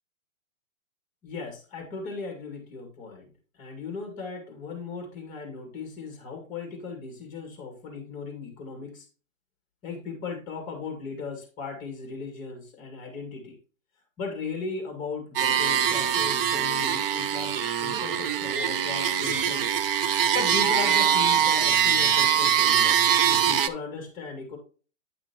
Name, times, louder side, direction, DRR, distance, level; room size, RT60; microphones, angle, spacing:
voice 1, 1.2-9.1 9.8-13.6 14.2-19.8 20.1-24.6, left 4 dB, 20° left, 3 dB, 2.2 m, -37 dB
sound 1, 15.4-23.7, right 9 dB, 45° right, 0.7 m, -23 dB
10.0 x 6.0 x 2.9 m, 0.37 s
hypercardioid pair, 155°, 39 cm